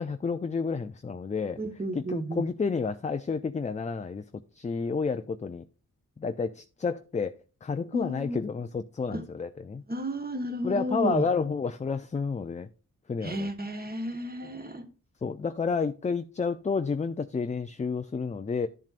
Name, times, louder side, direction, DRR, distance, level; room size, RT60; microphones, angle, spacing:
voice 1, 0.0-1.6 1.9-4.2 4.6-5.6 6.2-7.3 7.6-9.8 10.6-12.7 13.1-13.5 15.2-18.7, left 5 dB, 20° left, 0.4 m, -30 dB
voice 2, 1.6-2.4 7.9-8.4 9.1-9.2 9.9-11.3 13.2-14.9, right 1 dB, 25° right, 1.4 m, -32 dB
12.0 x 7.4 x 2.5 m
cardioid pair, 60°, 34 cm